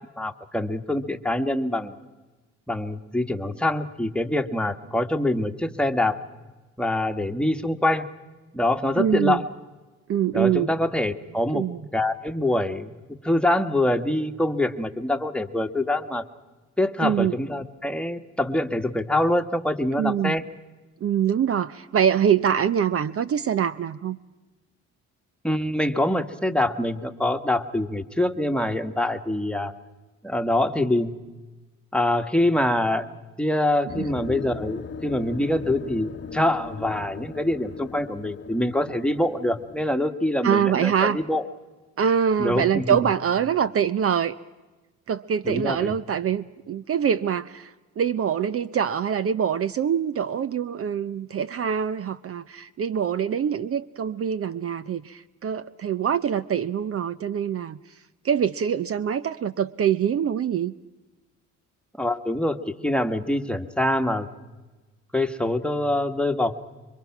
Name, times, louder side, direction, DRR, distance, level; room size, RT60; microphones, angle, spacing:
voice 1, 0.2-1.9 2.7-6.2 6.8-8.0 8.5-9.4 10.3-11.6 11.9-12.9 13.2-16.2 16.8-20.4 25.4-29.7 30.2-31.1 31.9-33.0 33.4-41.4 42.4-43.1 45.4-45.9 62.0-64.3 65.1-66.6, left 1 dB, 5° left, 7 dB, 1.5 m, -25 dB
voice 2, 9.0-9.4 10.1-10.7 11.5-11.8 17.0-17.4 19.9-20.4 21.0-24.2 34.0-34.1 40.4-41.2 42.0-44.3 45.1-57.8 58.2-60.7, right 8 dB, 50° right, 15 dB, 0.7 m, -24 dB
sound 1, 33.9-39.9, left 6 dB, 40° left, 1.0 m, -38 dB
27.0 x 24.0 x 6.0 m, 1.2 s
cardioid pair, 90°, 30 cm